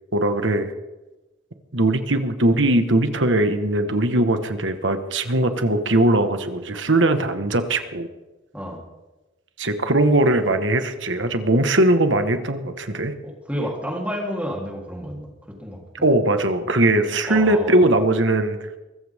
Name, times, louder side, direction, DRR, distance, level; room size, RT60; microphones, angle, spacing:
voice 1, 0.1-0.7 1.7-8.1 9.6-13.1 16.0-18.6, right 1 dB, 70° right, 8 dB, 1.6 m, -20 dB
voice 2, 13.2-15.3 15.6-16.1 17.3-17.7, equal, 5° right, -1 dB, 3.6 m, -30 dB
23.5 x 15.0 x 3.7 m, 1.1 s
head